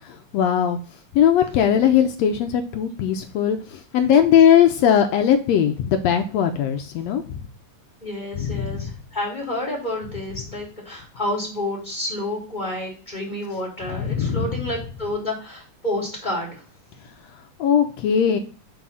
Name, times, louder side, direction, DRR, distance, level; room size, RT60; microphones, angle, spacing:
voice 1, 0.0-0.8 1.1-7.4 8.4-8.9 13.9-14.6 17.6-18.4, left 9 dB, 80° left, 6 dB, 1.6 m, -19 dB
voice 2, 8.0-16.6, left 1 dB, 15° left, -3 dB, 2.0 m, -29 dB
6.8 x 3.7 x 5.4 m, 0.38 s
omnidirectional pair, 3.5 m